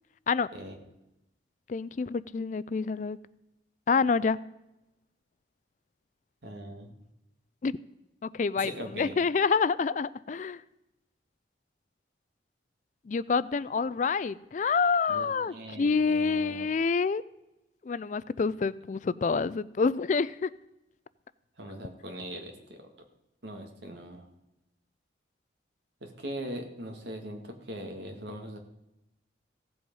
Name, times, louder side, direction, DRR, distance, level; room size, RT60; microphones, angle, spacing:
voice 1, 1.7-3.2 3.9-4.4 7.6-7.7 8.3-10.6 13.1-17.2 17.9-20.5, left 5 dB, 40° left, 18 dB, 0.3 m, -27 dB
voice 2, 6.4-6.9 8.6-9.2 15.1-16.7 21.6-22.9 23.4-24.3 26.0-28.6, right 1 dB, 75° right, 4 dB, 2.1 m, -40 dB
15.5 x 7.7 x 5.4 m, 0.90 s
head